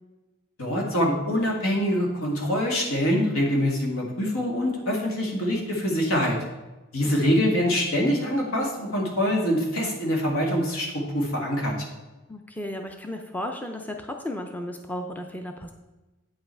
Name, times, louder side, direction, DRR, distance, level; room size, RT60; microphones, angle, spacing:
voice 1, 0.6-6.4 6.9-11.7, equal, 85° left, -1 dB, 2.0 m, -24 dB
voice 2, 12.3-15.7, left 1 dB, 10° left, 4 dB, 0.4 m, -34 dB
8.7 x 5.6 x 4.4 m, 1.1 s
head